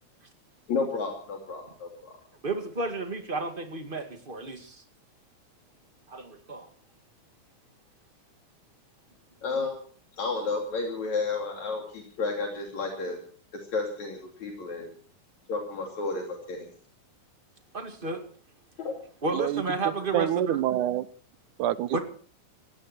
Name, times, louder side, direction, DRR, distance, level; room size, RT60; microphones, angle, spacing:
voice 1, 0.7-2.2 9.4-9.8 10.2-13.2 13.7-14.9 15.5-16.7 18.8-18.9, left 4 dB, 70° left, 1 dB, 4.1 m, -31 dB
voice 2, 2.4-4.8 6.1-6.7 17.7-18.2 19.2-20.6 21.9-22.0, right 3 dB, 20° right, 6 dB, 2.0 m, -32 dB
voice 3, 19.3-21.1 21.6-22.0, right 12 dB, 85° right, 16 dB, 2.3 m, -27 dB
19.5 x 17.0 x 4.4 m, 0.44 s
omnidirectional pair, 3.4 m